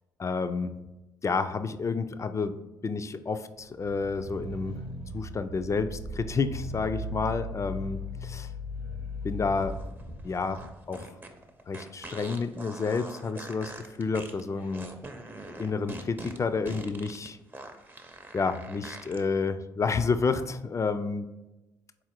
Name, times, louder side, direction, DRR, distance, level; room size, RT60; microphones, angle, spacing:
voice 1, 0.2-0.7 1.2-2.6 2.8-4.8 5.1-8.5 9.2-9.8 10.2-10.6 10.9-11.1 11.7-13.7 14.0-14.9 15.6-17.4 18.3-21.3, left 4 dB, 30° left, 11 dB, 0.3 m, -30 dB
sound 1, 3.8-9.8, left 1 dB, 75° right, 0.8 m, -38 dB
sound 2, 9.6-19.2, right 1 dB, 20° right, 0.6 m, -43 dB
3.9 x 2.5 x 4.3 m, 1.0 s
hypercardioid pair, 50°, 10 cm